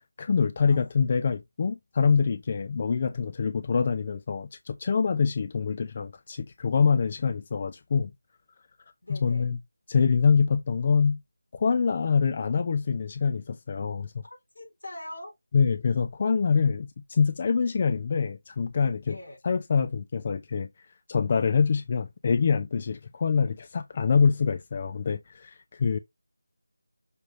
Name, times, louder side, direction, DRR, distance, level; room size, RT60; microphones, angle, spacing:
voice 1, 0.2-8.1 9.1-9.6 9.9-11.2 11.5-14.1 15.5-19.2 19.4-20.7 21.1-26.0, left 5 dB, 30° left, 0.5 m, -25 dB
voice 2, 9.0-9.5 14.2-15.4 19.1-19.4, left 1 dB, 75° left, 4.6 m, -43 dB
6.5 x 5.0 x 3.1 m
figure-of-eight pair, 165°, 0 cm